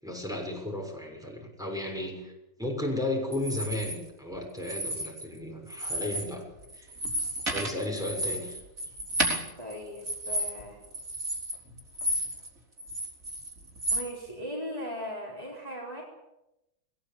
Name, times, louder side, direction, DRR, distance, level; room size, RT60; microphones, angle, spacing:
voice 1, 0.0-2.3 2.6-6.4 6.7-6.9 7.5-8.6, left 1 dB, ahead, 0 dB, 6.4 m, -34 dB
sound 1, 3.3-4.0 4.6-5.4 5.7-6.3 6.6-12.5 12.8-14.1, right 1 dB, 65° right, 4.2 m, -32 dB
voice 2, 9.6-10.8 13.9-16.0, equal, 25° left, -3 dB, 4.5 m, -38 dB
20.5 x 18.5 x 8.8 m, 0.93 s
omnidirectional pair, 1.5 m